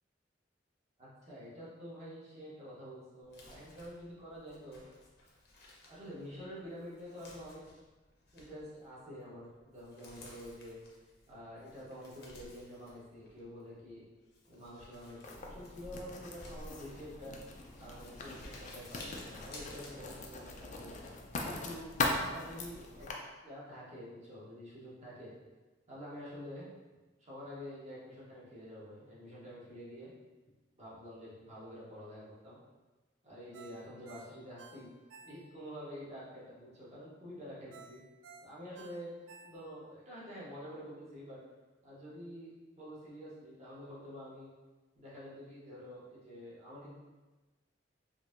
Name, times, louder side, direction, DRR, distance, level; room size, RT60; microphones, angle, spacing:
voice 1, 1.0-4.8 5.9-7.6 8.3-10.8 11.3-14.0 14.5-17.3 17.8-21.0 21.4-21.9 22.2-23.1 23.4-25.3 25.9-26.7 27.2-30.1 30.8-32.6 33.2-34.9 35.2-38.0 38.4-39.1 39.4-41.4 41.8-44.5 44.9-46.9, equal, 40° right, -8 dB, 1.2 m, -48 dB
Crumpling crinkling, 3.2-20.6, left 1 dB, 60° left, 0.8 m, -56 dB
Writing, 15.2-23.1, left 3 dB, 40° left, 0.4 m, -40 dB
Ringtone, 33.5-35.8 36.2-36.3 37.7-39.9 40.3-40.4, right 4 dB, 80° right, 0.4 m, -55 dB
4.3 x 2.7 x 2.6 m, 1.2 s
head